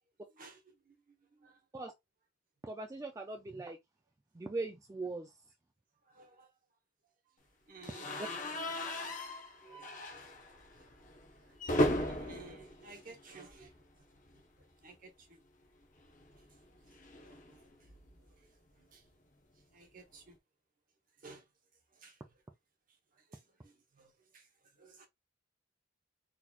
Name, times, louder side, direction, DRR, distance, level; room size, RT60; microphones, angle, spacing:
voice 1, 2.6-3.8 4.3-5.3 8.2-8.3, right 3 dB, 15° right, 0.3 m, -40 dB
voice 2, 6.1-6.5 7.7-8.5 8.8-9.1 9.6-9.9 11.8-13.7 14.8-15.4 17.2-17.6 18.9-19.0 19.7-20.4 21.2-21.4 22.0-22.1 23.3-24.4 24.8-25.1, right 3 dB, 45° right, 1.0 m, -55 dB
sound 1, 7.8-13.9 14.2-14.4 14.6-14.7 16.0-18.3, left 1 dB, 40° left, 0.8 m, -37 dB
4.0 x 3.0 x 2.3 m
head